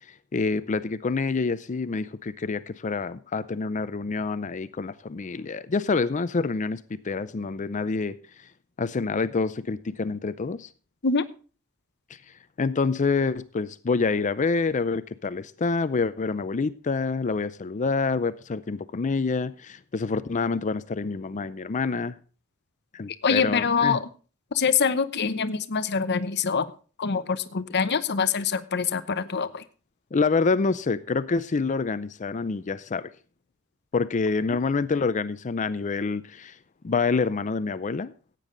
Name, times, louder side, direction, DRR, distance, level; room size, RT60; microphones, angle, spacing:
voice 1, 0.3-8.2 8.8-10.7 12.6-22.2 22.9-24.0 30.1-33.1 33.9-36.6 36.8-38.1, left 4 dB, 35° left, 0.5 m, -27 dB
voice 2, 23.2-24.1 24.5-26.6 27.0-29.6, left 5 dB, 55° left, 0.8 m, -24 dB
15.5 x 9.2 x 3.8 m
head